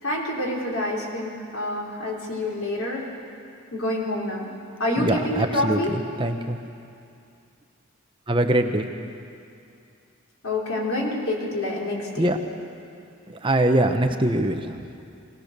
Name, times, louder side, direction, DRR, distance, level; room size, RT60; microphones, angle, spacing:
voice 1, 0.0-3.1 3.7-4.5 4.8-6.0 10.4-12.3, left 1 dB, 80° left, -3 dB, 3.9 m, -27 dB
voice 2, 5.0-6.6 8.3-8.9 12.2-12.4 13.3-14.8, right 1 dB, 25° right, 5 dB, 0.9 m, -23 dB
23.5 x 18.0 x 6.7 m, 2.5 s
head